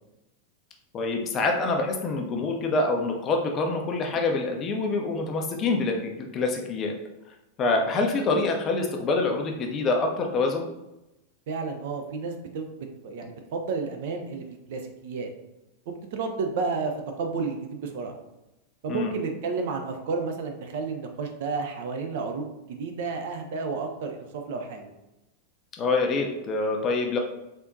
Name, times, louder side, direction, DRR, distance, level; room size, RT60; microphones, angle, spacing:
voice 1, 0.9-6.9 7.6-10.7 18.9-19.1 25.8-27.2, left 3 dB, 30° left, 2 dB, 0.4 m, -26 dB
voice 2, 11.5-12.7 13.0-15.3 16.1-16.9 17.2-18.1 18.8-24.9, right 4 dB, 55° right, 4 dB, 0.3 m, -31 dB
3.4 x 2.6 x 2.5 m, 0.95 s
figure-of-eight pair, 90°, 0 cm